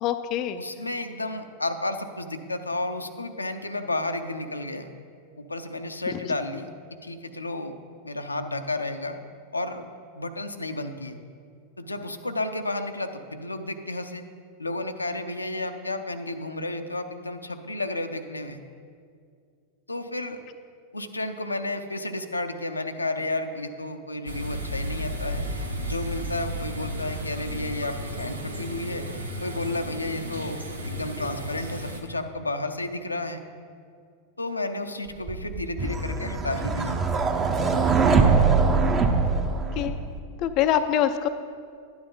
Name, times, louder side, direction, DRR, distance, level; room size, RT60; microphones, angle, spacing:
voice 1, 0.0-0.6 39.8-39.9 40.4-41.3, left 10 dB, 40° left, 9 dB, 0.4 m, -24 dB
voice 2, 0.6-4.9 5.4-6.7 7.0-7.8 8.0-9.2 9.5-9.9 10.2-11.2 11.8-14.2 14.6-18.6 19.9-20.4 20.9-25.5 25.8-29.1 29.4-33.4 34.4-37.0, left 2 dB, 80° left, 7 dB, 0.6 m, -32 dB
sound 1, 24.3-32.0, equal, 80° right, 1.0 m, -33 dB
sound 2, 35.3-40.2, right 4 dB, 25° right, 0.8 m, -22 dB
11.5 x 9.6 x 3.8 m, 2.2 s
figure-of-eight pair, 90°, 0 cm